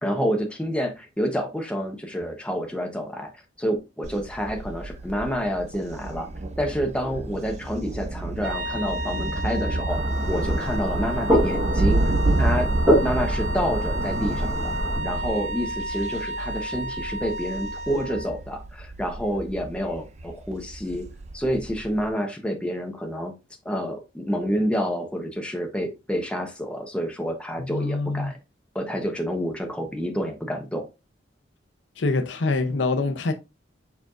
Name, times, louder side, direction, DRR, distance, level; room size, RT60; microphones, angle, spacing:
voice 1, 0.0-3.3 3.6-6.3 6.6-10.0 10.3-12.0 12.4-12.7 13.0-14.7 15.0-21.1 21.3-23.3 23.6-28.4 28.7-30.9, equal, 5° left, 0.8 m, -28 dB
Thunder, 4.0-22.1, right 2 dB, 35° right, 0.5 m, -30 dB
sound 1, 8.4-18.4, right 1 dB, 90° right, 1.1 m, -33 dB
sound 2, 9.9-15.0, equal, 15° right, 1.2 m, -25 dB
voice 2, 27.6-28.3 32.0-33.3, left 3 dB, 70° left, 0.6 m, -25 dB
4.7 x 4.5 x 2.4 m
head